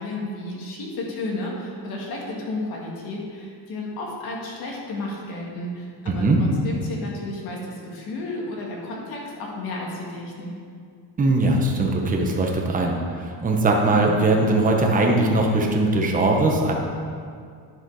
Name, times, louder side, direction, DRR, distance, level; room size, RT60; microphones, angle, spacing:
voice 1, 0.0-10.5, left 2 dB, 55° left, -2 dB, 2.0 m, -32 dB
voice 2, 6.1-6.4 11.2-16.7, right 2 dB, 20° right, 0 dB, 1.0 m, -20 dB
10.5 x 7.3 x 4.8 m, 2.2 s
cardioid pair, 170°, 43 cm